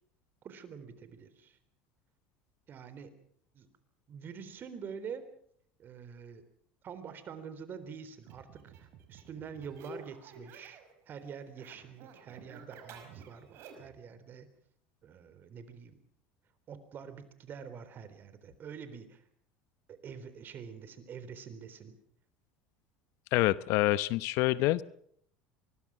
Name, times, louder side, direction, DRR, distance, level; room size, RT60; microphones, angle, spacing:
voice 1, 0.4-1.6 2.7-3.1 3.5-3.7 4.1-5.3 5.8-6.4 6.8-10.8 11.1-14.5 15.0-16.0 16.7-19.2 19.9-22.0, right 6 dB, 45° right, 12 dB, 3.8 m, -46 dB
sound 1, 8.2-10.9 11.2-14.0, right 4 dB, 60° right, 5.5 m, -51 dB
voice 2, 23.3-24.8, left 17 dB, 65° left, 18 dB, 0.8 m, -26 dB
24.0 x 21.0 x 6.3 m, 0.65 s
hypercardioid pair, 85°, 5 cm